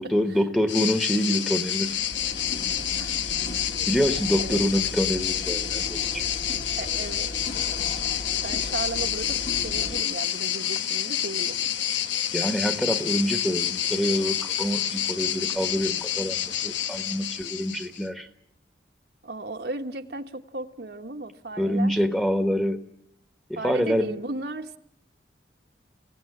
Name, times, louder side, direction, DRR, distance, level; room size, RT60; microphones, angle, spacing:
voice 1, 0.0-2.0 3.8-6.3 12.3-18.3 21.6-22.8 23.5-24.1, equal, ahead, 7 dB, 1.4 m, -26 dB
sound 1, 0.7-18.1, left 10 dB, 85° left, 1.1 m, -28 dB
sound 2, 1.5-10.0, left 1 dB, 45° left, 1.7 m, -38 dB
voice 2, 6.8-7.3 8.4-9.4 9.6-11.6 19.2-22.0 23.6-24.8, right 2 dB, 60° right, 4 dB, 1.4 m, -35 dB
24.5 x 17.0 x 9.9 m, 0.80 s
head